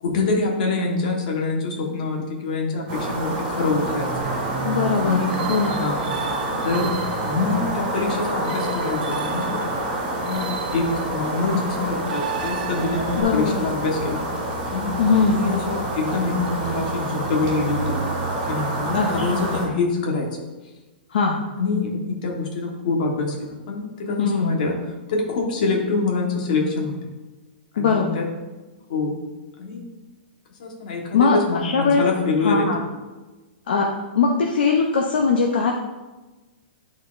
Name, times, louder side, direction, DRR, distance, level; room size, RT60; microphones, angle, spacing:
voice 1, 0.0-4.3 4.9-6.0 6.6-9.6 10.2-14.2 14.7-14.9 15.2-18.0 18.5-20.3 21.6-24.7 25.1-27.1 27.7-28.3 28.9-29.2 29.6-29.8 30.6-32.7, left 3 dB, 50° left, 0 dB, 1.3 m, -25 dB
sound 1, 2.9-19.7, right 1 dB, 30° right, 1.8 m, -27 dB
sound 2, 4.2-13.2, right 7 dB, 55° right, 0.6 m, -36 dB
voice 2, 4.6-5.8 13.2-13.6 15.0-15.4 18.9-19.5 21.1-21.4 24.2-24.6 27.8-28.2 31.1-32.0 32.4-32.8 33.7-33.9 34.1-35.7, left 5 dB, 65° left, 1 dB, 0.6 m, -21 dB
9.8 x 4.1 x 2.5 m, 1.2 s
hypercardioid pair, 170°, 6 cm